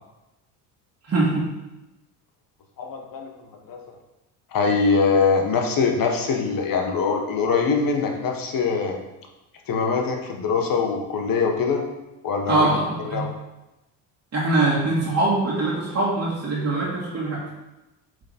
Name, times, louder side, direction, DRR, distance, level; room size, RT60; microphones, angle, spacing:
voice 1, 1.1-1.5 12.5-13.3 14.3-17.4, right 2 dB, 35° right, -7 dB, 2.2 m, -22 dB
voice 2, 2.8-3.3 3.7-3.8 4.5-9.0 9.7-11.8 12.2-12.7 13.1-13.3, left 5 dB, 45° left, 2 dB, 1.5 m, -23 dB
7.7 x 4.0 x 4.4 m, 0.99 s
supercardioid pair, 85°, 47 cm